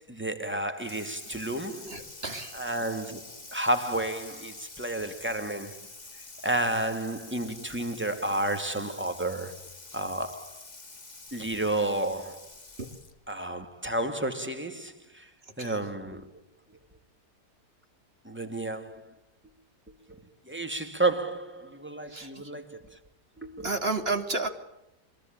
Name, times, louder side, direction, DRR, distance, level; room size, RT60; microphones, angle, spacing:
voice 1, 0.0-1.9 2.5-5.8 6.4-9.6 9.9-10.6 11.3-12.5 13.3-15.3 15.6-16.3 18.2-19.1 20.1-20.2 20.5-23.0 23.4-23.7, right 1 dB, 5° right, 2.5 m, -31 dB
Water tap faucet / Sink (filling or washing), 0.8-13.3, left 3 dB, 25° left, 2.2 m, -47 dB
voice 2, 1.7-2.7 12.8-12.9 15.6-15.9 22.1-22.5 23.6-24.5, right 3 dB, 35° right, 3.2 m, -32 dB
25.5 x 22.5 x 8.9 m
omnidirectional pair, 1.8 m